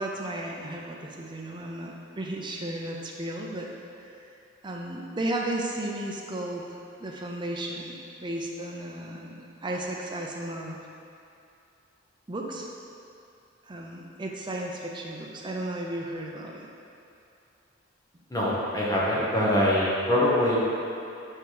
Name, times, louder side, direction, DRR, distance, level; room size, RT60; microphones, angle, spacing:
voice 1, 0.0-3.7 4.0-4.1 4.6-10.8 12.3-12.7 13.7-16.7, right 1 dB, 25° right, -1 dB, 0.5 m, -34 dB
voice 2, 18.3-20.6, left 1 dB, 20° left, -6 dB, 1.0 m, -23 dB
5.3 x 5.0 x 3.9 m, 2.6 s
head